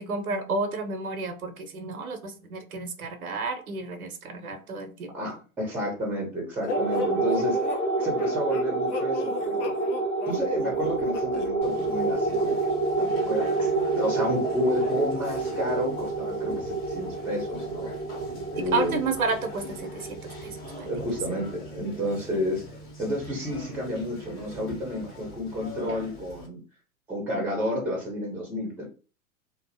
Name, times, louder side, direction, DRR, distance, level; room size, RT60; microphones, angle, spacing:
voice 1, 0.0-5.4 18.6-20.9, right 4 dB, 80° right, 8 dB, 0.6 m, -31 dB
voice 2, 5.1-7.7 8.0-9.7 10.3-17.9 18.5-19.0 20.8-22.6 23.0-26.6 27.1-28.9, left 1 dB, 5° right, 0 dB, 0.5 m, -31 dB
sound 1, 6.7-21.5, right 3 dB, 90° left, 0.9 m, -28 dB
sound 2, 6.7-11.5, left 4 dB, 55° left, 0.5 m, -37 dB
Conversation, 11.6-26.5, equal, 20° left, 0.7 m, -42 dB
2.4 x 2.0 x 2.6 m, 0.36 s
figure-of-eight pair, 95°, 43 cm